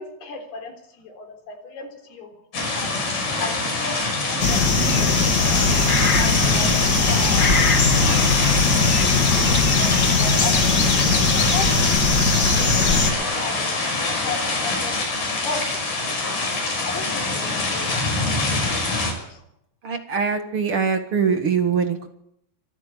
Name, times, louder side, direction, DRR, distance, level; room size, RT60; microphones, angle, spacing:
voice 1, 0.0-6.7 7.0-7.6 8.0-8.3 8.8-11.8 12.1-12.7 13.0-15.6 16.0-16.4 16.9-19.4, left 4 dB, 70° left, 4 dB, 5.6 m, -36 dB
sound 1, 2.5-19.1, left 3 dB, 55° left, 7.3 m, -25 dB
sound 2, 4.4-13.1, left 4 dB, 30° left, 2.1 m, -19 dB
voice 2, 19.8-22.1, right 6 dB, 50° right, 6 dB, 1.7 m, -22 dB
25.5 x 13.5 x 8.3 m, 0.75 s
omnidirectional pair, 4.7 m